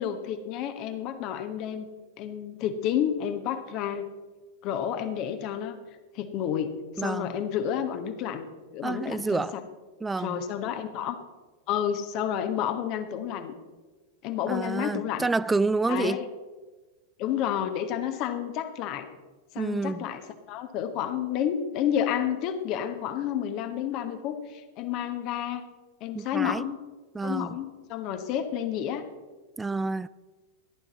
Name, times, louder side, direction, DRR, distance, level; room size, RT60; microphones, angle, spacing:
voice 1, 0.0-1.9 2.2-4.1 4.6-5.8 6.1-8.5 8.7-9.6 10.2-11.2 11.7-13.5 14.2-15.3 15.9-16.3 17.2-19.1 19.5-25.6 26.0-26.8 27.2-29.0, left 9 dB, 40° left, 8 dB, 1.2 m, -30 dB
voice 2, 7.0-7.4 8.8-9.6 10.0-10.4 14.5-16.2 19.6-20.0 26.1-26.6 27.1-27.6 29.6-30.1, right 3 dB, 10° right, 18 dB, 0.3 m, -28 dB
14.0 x 11.5 x 4.1 m, 1.3 s
figure-of-eight pair, 90°, 0 cm